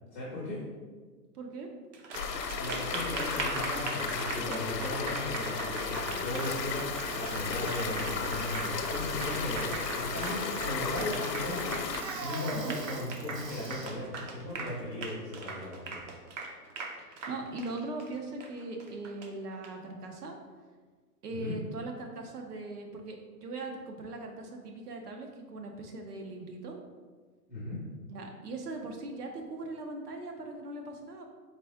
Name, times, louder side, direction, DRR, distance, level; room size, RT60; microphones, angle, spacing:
voice 1, 0.1-0.6 2.3-6.8 7.2-11.7 12.2-16.0 21.3-21.6 27.5-27.8, left 1 dB, 10° left, -10 dB, 0.4 m, -37 dB
voice 2, 1.3-1.7 12.5-12.8 17.0-20.4 21.2-26.8 28.1-31.2, right 2 dB, 70° right, 3 dB, 1.0 m, -40 dB
Applause, 1.9-19.7, right 3 dB, 50° right, 0.7 m, -40 dB
sound 1, 2.1-12.0, left 5 dB, 80° left, 0.7 m, -35 dB
Bicycle, 5.1-15.2, right 2 dB, 85° right, 1.2 m, -44 dB
4.2 x 3.5 x 3.5 m, 1.5 s
hypercardioid pair, 145°, 48 cm